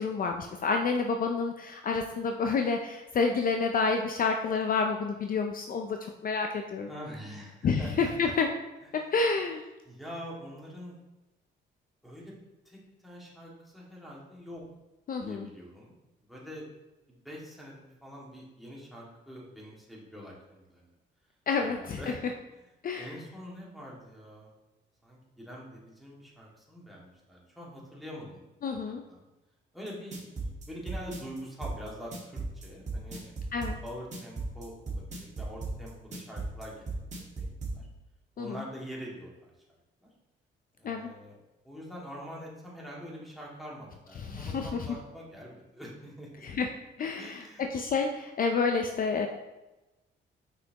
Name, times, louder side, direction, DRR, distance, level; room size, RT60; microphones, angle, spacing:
voice 1, 0.0-6.0 6.2-6.9 7.6-8.5 9.1-9.6 15.1-15.5 21.5-22.0 22.8-23.1 28.6-29.0 33.5-33.8 38.4-38.6 40.8-41.1 44.2-44.9 46.4-46.7 47.0-49.3, left 4 dB, 45° left, 4 dB, 0.5 m, -29 dB
voice 2, 6.9-8.3 8.9-9.1 9.9-11.0 12.0-12.4 12.7-14.6 15.2-15.9 16.3-16.7 17.1-20.9 21.6-22.2 23.0-24.5 25.0-28.8 29.1-29.2 29.7-33.3 33.8-37.9 38.4-39.5 40.0-40.1 40.8-41.4 41.6-46.4 47.2-47.7, equal, ahead, -5 dB, 2.0 m, -45 dB
sound 1, 29.9-37.8, right 3 dB, 35° right, 1.7 m, -35 dB
5.9 x 5.7 x 2.9 m, 1.0 s
cardioid pair, 90°, 20 cm